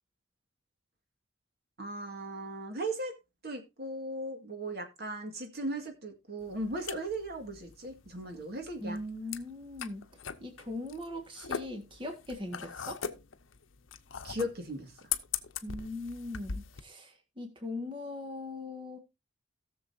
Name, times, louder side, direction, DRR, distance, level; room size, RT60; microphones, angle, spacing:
voice 1, 1.8-3.1 3.4-9.0 14.2-14.9, right 1 dB, 50° right, 2.0 m, -37 dB
sound 1, 6.4-16.8, left 7 dB, 75° left, 0.8 m, -40 dB
voice 2, 8.8-10.0 10.4-13.0 15.6-17.1 17.4-19.0, left 2 dB, 25° right, 1.7 m, -40 dB
17.5 x 6.8 x 2.8 m
head